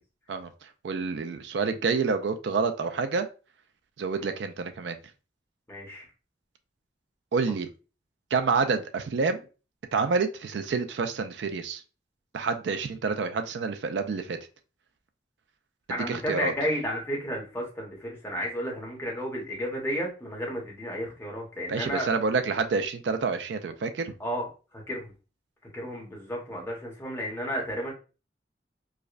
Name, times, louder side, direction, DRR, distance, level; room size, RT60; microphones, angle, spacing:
voice 1, 0.3-3.3 4.0-5.0 7.3-7.7 8.3-9.4 9.9-11.8 12.3-14.4 16.1-16.5 21.7-24.1, right 4 dB, 75° right, 8 dB, 0.4 m, -28 dB
voice 2, 5.7-6.1 15.9-22.1 24.2-24.5 24.7-25.1 25.7-27.9, equal, 15° left, -2 dB, 1.0 m, -32 dB
4.8 x 2.1 x 2.4 m, 0.33 s
head